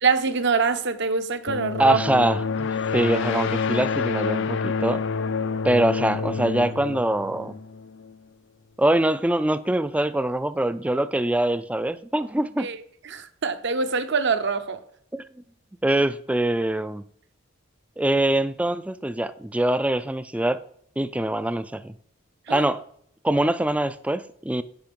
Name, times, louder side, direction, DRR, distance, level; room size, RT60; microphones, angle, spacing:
voice 1, 0.0-2.0 12.6-12.8 13.0-14.8 22.5-22.7, right 5 dB, 55° right, 0.8 m, -24 dB
sound 1, 1.5-8.1, left 5 dB, 60° left, 0.5 m, -28 dB
voice 2, 1.8-5.0 5.6-7.6 8.8-12.7 15.1-15.2 15.8-17.0 18.0-20.6 21.0-21.9 22.5-22.8 23.2-24.6, right 1 dB, 5° right, 0.3 m, -23 dB
10.5 x 5.3 x 5.3 m
head